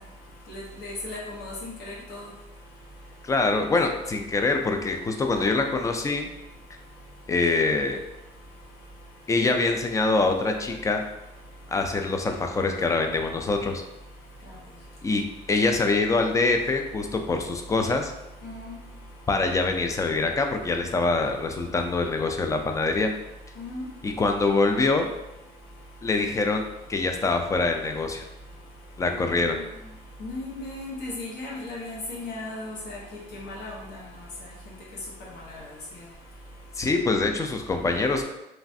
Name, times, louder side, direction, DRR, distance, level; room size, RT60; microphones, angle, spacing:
voice 1, 0.5-2.3 5.4-5.6 18.4-18.8 23.6-23.8 29.1-29.7 30.2-33.0 33.3-33.8, left 2 dB, 75° left, -5 dB, 1.1 m, -36 dB
voice 2, 3.2-6.3 7.3-8.0 9.3-11.0 11.7-13.8 15.0-18.1 19.3-23.1 24.0-25.1 26.0-28.2 29.0-29.6 36.8-38.2, left 3 dB, 20° left, 4 dB, 0.3 m, -24 dB
3.0 x 2.4 x 2.6 m, 0.93 s
cardioid pair, 110°, 17 cm